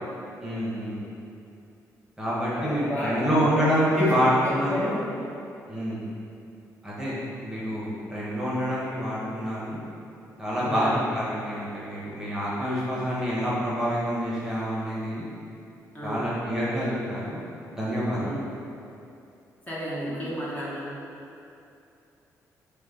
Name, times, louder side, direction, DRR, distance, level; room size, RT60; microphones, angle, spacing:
voice 1, 0.4-1.0 2.2-5.0 5.7-6.1 6.8-7.2 7.4-9.8 10.4-15.2 16.0-17.4 17.7-18.4, equal, 10° right, -8 dB, 1.0 m, -27 dB
voice 2, 2.5-3.6 4.0-5.0 10.6-10.8 15.9-16.3 18.2-18.5 19.7-20.9, equal, 25° left, -8 dB, 1.0 m, -32 dB
4.8 x 2.2 x 3.7 m, 2.6 s
cardioid pair, 100°, 6 cm